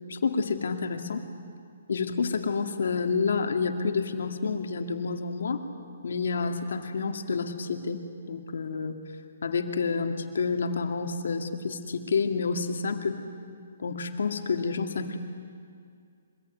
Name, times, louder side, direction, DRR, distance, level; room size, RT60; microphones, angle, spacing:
voice 1, 0.1-1.2 1.9-5.6 6.0-9.0 9.4-13.2 13.8-15.2, left 4 dB, 75° left, 5 dB, 2.3 m, -29 dB
25.0 x 21.0 x 9.4 m, 2.3 s
hypercardioid pair, 155°, 0 cm